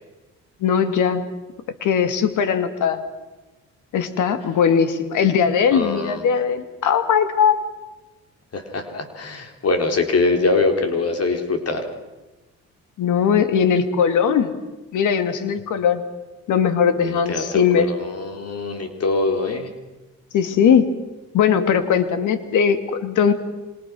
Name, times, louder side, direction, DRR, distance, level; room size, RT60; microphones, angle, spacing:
voice 1, 0.6-1.2 1.8-3.0 3.9-7.6 13.0-14.6 14.9-16.0 16.5-17.9 20.3-20.9 21.3-23.3, left 7 dB, 80° left, 10 dB, 2.3 m, -19 dB
voice 2, 5.7-6.2 8.5-11.9 17.0-19.7, left 3 dB, 55° left, 5 dB, 4.0 m, -23 dB
27.5 x 25.5 x 6.2 m, 1.1 s
cardioid pair, 90°, 30 cm